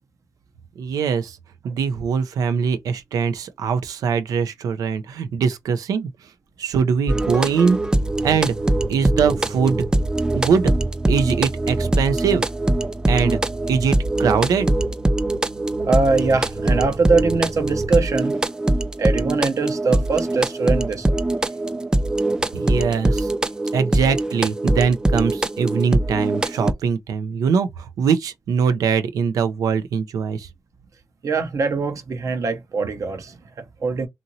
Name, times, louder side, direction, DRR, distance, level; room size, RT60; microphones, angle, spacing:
voice 1, 0.8-1.4 1.6-6.1 6.6-7.8 8.2-8.6 8.9-9.8 10.3-10.7 11.1-12.4 13.1-13.4 13.7-14.7 22.5-23.3 23.7-30.5, right 6 dB, 90° right, 0.4 m, -22 dB
sound 1, 7.1-26.7, right 1 dB, 15° right, 0.3 m, -22 dB
voice 2, 15.8-18.4 19.0-21.1 31.2-34.1, right 4 dB, 65° right, 0.7 m, -22 dB
2.9 x 2.5 x 2.6 m
cardioid pair, 60°, 6 cm